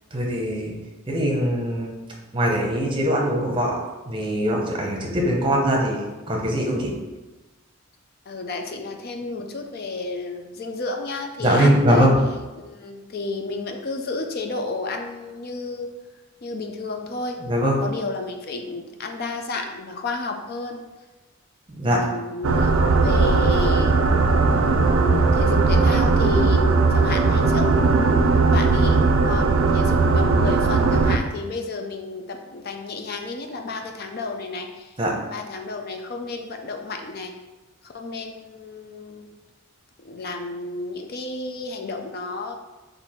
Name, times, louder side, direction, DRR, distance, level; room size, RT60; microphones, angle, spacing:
voice 1, 0.1-0.7 1.1-1.9 2.3-3.7 4.1-6.9 11.4-12.2 17.5-17.8 21.8-22.0 35.0-35.1, equal, 25° right, -1 dB, 0.8 m, -21 dB
voice 2, 8.3-12.1 12.6-15.9 16.4-17.4 17.8-20.8 22.0-24.0 24.9-26.6 26.9-34.9 35.3-37.3 37.8-39.3 40.0-42.5, left 3 dB, 45° left, 4 dB, 0.4 m, -32 dB
sound 1, 22.4-31.2, right 3 dB, 75° right, 0.4 m, -18 dB
4.4 x 2.6 x 4.2 m, 1.1 s
head